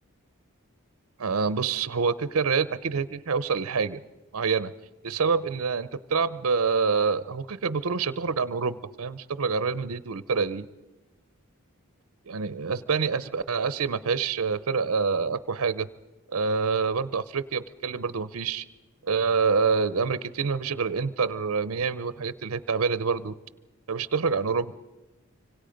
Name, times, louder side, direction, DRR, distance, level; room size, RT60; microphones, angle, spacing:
voice 1, 1.2-4.0 4.3-4.7 5.0-10.7 12.3-15.9 16.3-18.6 19.0-23.3 23.9-24.7, right 5 dB, 75° right, 16 dB, 0.6 m, -26 dB
26.0 x 25.0 x 5.2 m, 1.1 s
head